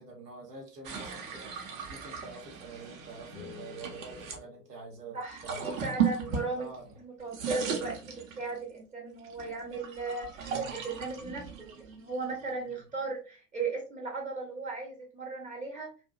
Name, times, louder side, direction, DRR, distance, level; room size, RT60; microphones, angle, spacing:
voice 1, 0.0-1.5 1.9-5.9 6.6-7.0 12.7-12.8, right 3 dB, 80° right, 0 dB, 0.9 m, -46 dB
sound 1, 0.8-4.4 5.2-6.9 7.2-8.7 9.2-12.7, right 7 dB, 55° right, 0.7 m, -36 dB
sound 2, 3.3-5.5, left 11 dB, 60° left, 0.5 m, -51 dB
voice 2, 5.1-6.7 7.0-15.9, right 3 dB, 15° right, 0 dB, 0.5 m, -37 dB
2.4 x 2.1 x 2.4 m, 0.34 s
figure-of-eight pair, 80°, 47 cm